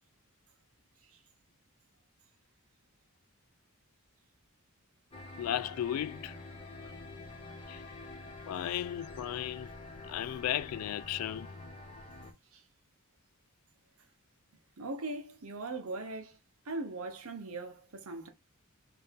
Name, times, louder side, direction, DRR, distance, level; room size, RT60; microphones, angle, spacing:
sound 1, 5.1-12.3, left 2 dB, 25° left, 1.2 m, -47 dB
voice 1, 5.4-6.3 7.7-7.8 8.5-9.7 10.1-11.5, left 11 dB, 85° left, 0.3 m, -35 dB
voice 2, 14.8-16.4 16.7-18.3, right 2 dB, 75° right, 0.8 m, -40 dB
3.8 x 2.6 x 3.5 m
head